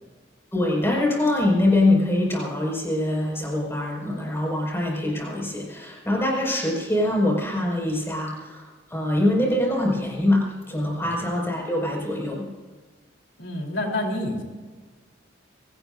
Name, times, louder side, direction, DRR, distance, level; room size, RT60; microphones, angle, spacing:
voice 1, 0.5-12.5, left 1 dB, 15° left, -1 dB, 5.5 m, -24 dB
voice 2, 13.4-14.4, left 1 dB, 75° left, 1 dB, 3.6 m, -28 dB
25.5 x 18.0 x 2.6 m, 1.3 s
head